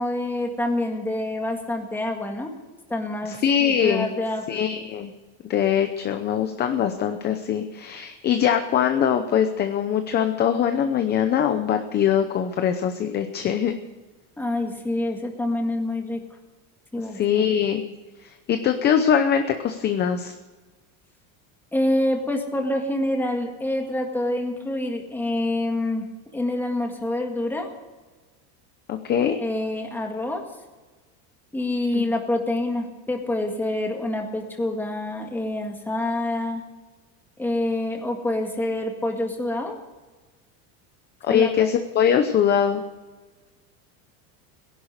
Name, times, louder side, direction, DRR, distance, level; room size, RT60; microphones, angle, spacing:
voice 1, 0.0-2.5 2.9-4.4 14.4-16.2 16.9-17.5 21.7-26.1 26.3-27.7 29.4-30.4 31.5-36.6 37.4-39.8 41.3-41.7, left 1 dB, 5° left, 3 dB, 1.8 m, -26 dB
voice 2, 3.2-4.1 4.5-5.1 5.4-13.7 17.1-17.8 18.2-20.3 28.9-29.4 31.9-32.0 41.2-42.8, left 8 dB, 25° left, 7 dB, 0.7 m, -22 dB
19.0 x 11.0 x 6.6 m, 1.3 s
cardioid pair, 170°, 43 cm